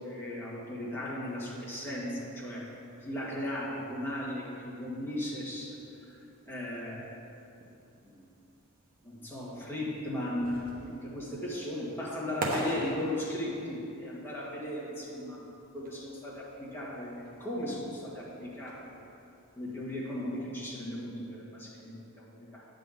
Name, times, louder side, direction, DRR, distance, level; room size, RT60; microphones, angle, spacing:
voice 1, 0.0-2.7 3.0-5.8 6.5-7.1 8.0-8.2 9.0-15.5 15.7-18.9 19.6-22.3 22.5-22.7, left 1 dB, 10° left, -6 dB, 1.7 m, -36 dB
sound 1, 1.3-20.6, right 1 dB, 40° right, 1.1 m, -46 dB
9.8 x 4.0 x 7.4 m, 2.7 s
head